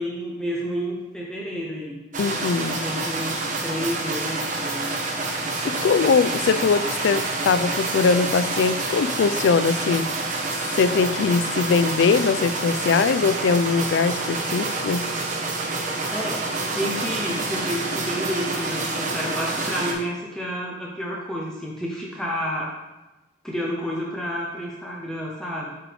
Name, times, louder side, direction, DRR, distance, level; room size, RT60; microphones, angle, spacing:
voice 1, 0.0-2.0 2.7-4.9 5.4-6.0 16.1-22.8 23.4-25.8, equal, 5° left, 0.7 m, -30 dB
sound 1, 2.1-19.9, right 2 dB, 45° right, 1.1 m, -27 dB
voice 2, 2.2-2.8 5.6-10.1 10.7-15.1, left 5 dB, 85° left, 0.3 m, -21 dB
7.5 x 4.8 x 3.4 m
head